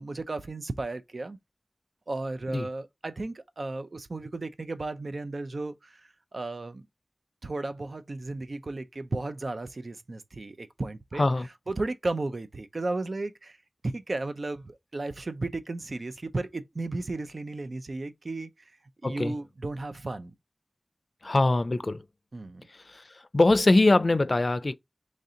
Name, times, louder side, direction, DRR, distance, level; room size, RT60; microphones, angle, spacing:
voice 1, 0.0-1.4 2.1-6.8 7.4-11.3 11.7-13.6 13.8-18.5 19.0-20.3 22.3-22.7, right 2 dB, 75° right, 0.4 m, -34 dB
voice 2, 19.0-19.3 21.2-22.0 22.9-23.0 23.3-24.7, left 2 dB, 60° left, 0.4 m, -22 dB
3.2 x 2.7 x 3.6 m
wide cardioid pair, 40°, 0 cm